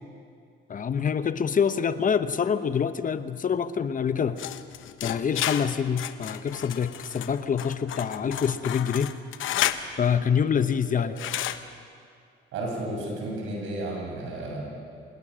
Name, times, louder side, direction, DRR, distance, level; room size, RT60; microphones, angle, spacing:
voice 1, 0.7-4.4 5.0-9.1 10.0-11.2, left 7 dB, 40° left, 12 dB, 0.9 m, -26 dB
sound 1, 4.4-9.9 11.2-11.6, left 12 dB, 80° left, 0.9 m, -31 dB
voice 2, 12.5-14.6, right 1 dB, 85° right, -1 dB, 6.6 m, -32 dB
26.0 x 20.0 x 6.3 m, 2.4 s
cardioid pair, 90°, 20 cm